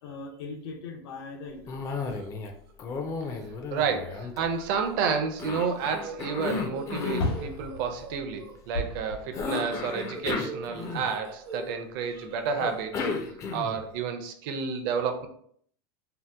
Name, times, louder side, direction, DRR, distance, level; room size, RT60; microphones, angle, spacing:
voice 1, 0.0-2.2, left 4 dB, 70° left, 3 dB, 0.6 m, -41 dB
sound 1, 1.5-3.1 3.4-3.5 5.8-5.9 7.2-11.1, left 2 dB, 90° left, 1.0 m, -37 dB
Cough, 1.7-2.5 2.8-4.8 5.4-7.4 9.3-11.3 12.6-13.9, left 4 dB, 25° left, 0.4 m, -33 dB
sound 2, 1.9-2.3 2.7-3.0 3.2-3.3 4.5-5.2 5.5-8.6 9.7-11.7 12.0-12.8, right 3 dB, 75° right, 0.9 m, -44 dB
voice 2, 3.7-13.1 13.5-15.3, right 6 dB, 55° right, 6 dB, 0.5 m, -30 dB
2.8 x 2.1 x 3.4 m, 0.63 s
supercardioid pair, 145°, 13 cm